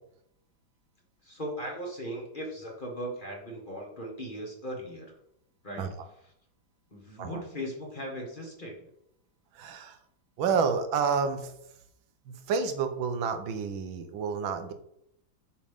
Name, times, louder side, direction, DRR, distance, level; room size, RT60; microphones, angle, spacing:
voice 1, 1.2-5.2 5.6-6.3 6.9-8.9, equal, 30° left, -1 dB, 1.5 m, -38 dB
voice 2, 9.5-10.0 10.4-11.5 12.3-14.7, right 6 dB, 85° right, 7 dB, 1.7 m, -29 dB
7.3 x 5.7 x 3.5 m, 0.74 s
omnidirectional pair, 2.1 m